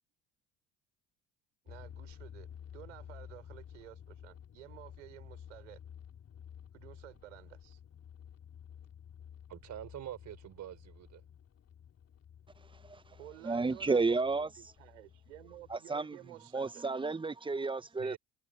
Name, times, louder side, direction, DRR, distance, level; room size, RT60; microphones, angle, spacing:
voice 1, 1.6-2.5 2.7-5.8 6.7-7.8 13.1-16.8, right 16 dB, 75° right, 5.1 m, -52 dB
sound 1, 1.7-15.8, left 9 dB, 40° left, 4.0 m, -53 dB
voice 2, 9.5-11.2 18.0-18.2, right 12 dB, 50° right, 5.1 m, -45 dB
voice 3, 13.4-14.5 15.7-16.2 16.5-18.2, right 3 dB, 15° right, 1.3 m, -32 dB
figure-of-eight pair, 60°, 38 cm